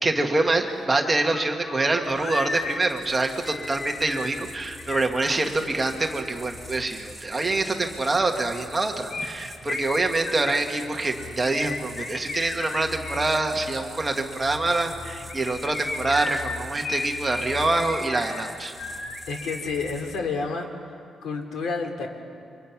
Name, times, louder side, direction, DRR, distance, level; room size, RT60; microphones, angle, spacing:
voice 1, 0.0-18.7, right 2 dB, 15° right, 3 dB, 1.4 m, -25 dB
sound 1, 0.7-0.8 1.0-5.8 9.1-13.3 15.2-19.8 20.0-20.1, left 3 dB, 40° left, 1.7 m, -34 dB
sound 2, 2.0-20.4, left 1 dB, 5° left, 1.5 m, -43 dB
voice 2, 19.3-20.7 21.2-22.1, left 4 dB, 80° left, 3 dB, 2.8 m, -29 dB
29.0 x 25.0 x 5.9 m, 2.3 s
wide cardioid pair, 180°, 0 cm